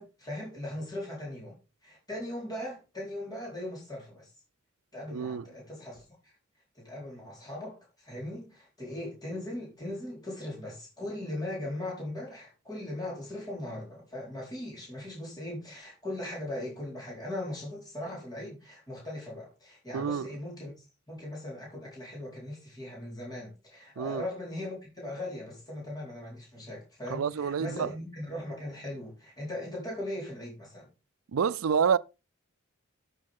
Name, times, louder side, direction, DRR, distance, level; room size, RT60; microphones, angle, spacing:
voice 1, 0.0-1.6 1.8-4.3 4.9-6.3 6.7-30.9, left 1 dB, 20° left, 4.2 m, -39 dB
voice 2, 5.1-5.4 19.9-20.3 24.0-24.2 27.1-27.9 31.3-32.0, right 6 dB, 90° right, 0.5 m, -28 dB
13.0 x 6.5 x 3.6 m
head